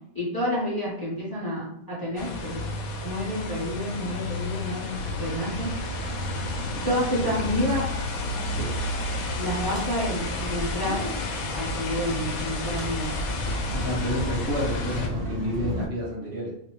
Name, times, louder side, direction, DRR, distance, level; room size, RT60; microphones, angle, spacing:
voice 1, 0.1-2.6 3.0-4.9 5.2-5.7 6.8-7.8 9.3-11.0 11.5-13.1, equal, 15° left, -8 dB, 1.1 m, -29 dB
sound 1, 2.2-15.1, left 4 dB, 90° left, 1.1 m, -34 dB
sound 2, 2.3-14.6 14.9-15.1, left 2 dB, 20° right, 1.3 m, -38 dB
sound 3, 4.9-15.9, right 1 dB, 70° right, 1.4 m, -33 dB
voice 2, 13.7-16.5, left 1 dB, 50° right, -6 dB, 1.4 m, -30 dB
3.0 x 2.7 x 3.1 m, 0.74 s
omnidirectional pair, 1.5 m